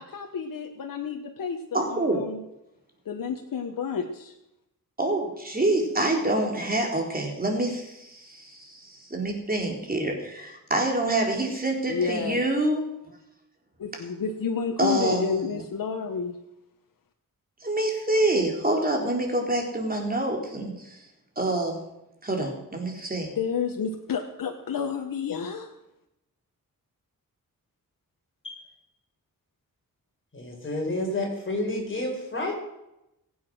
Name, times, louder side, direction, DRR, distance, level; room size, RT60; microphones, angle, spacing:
voice 1, 0.0-2.4 3.0-4.4 11.9-12.4 13.8-16.4 23.3-25.7, left 6 dB, 70° left, 3 dB, 1.4 m, -30 dB
voice 2, 1.7-2.2 5.0-12.8 14.8-15.2 17.6-21.0 21.4-21.8 22.2-23.3, right 2 dB, 25° right, 1 dB, 4.0 m, -26 dB
voice 3, 30.3-32.5, left 1 dB, 35° left, 0 dB, 5.4 m, -30 dB
22.0 x 8.6 x 6.2 m, 0.87 s
wide cardioid pair, 105°, 35 cm